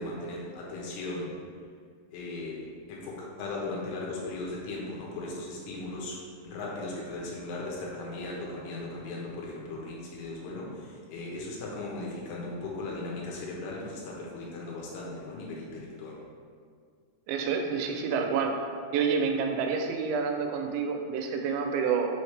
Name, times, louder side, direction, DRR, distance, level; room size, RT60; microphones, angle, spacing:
voice 1, 0.0-1.3 2.1-6.2 6.4-16.1, left 2 dB, 80° left, -3 dB, 3.3 m, -37 dB
voice 2, 17.3-18.5 18.9-22.1, right 5 dB, 85° right, 3 dB, 2.8 m, -28 dB
7.1 x 4.9 x 3.3 m, 2.1 s
omnidirectional pair, 5.2 m